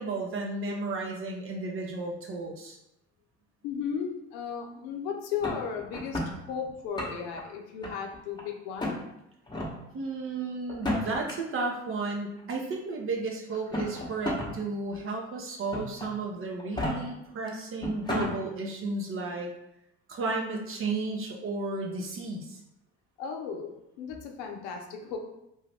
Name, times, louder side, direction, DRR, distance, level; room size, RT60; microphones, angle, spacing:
voice 1, 0.0-2.8 9.9-19.5 20.1-22.6, right 3 dB, 45° right, 0 dB, 0.6 m, -33 dB
voice 2, 3.6-6.2 6.5-9.0 23.2-23.7 24.0-25.2, left 7 dB, 85° left, 3 dB, 0.6 m, -35 dB
sound 1, 5.4-6.3 6.8-7.4 7.8-8.4 8.8-9.0 9.5-9.7 10.7-11.3 12.4-12.5 13.5-14.5 14.9-15.0 15.7-16.1 16.6-16.9 17.5-17.6 17.8-18.3, left 1 dB, 15° left, 0.9 m, -32 dB
2.6 x 2.3 x 3.3 m, 0.83 s
supercardioid pair, 70°, 30 cm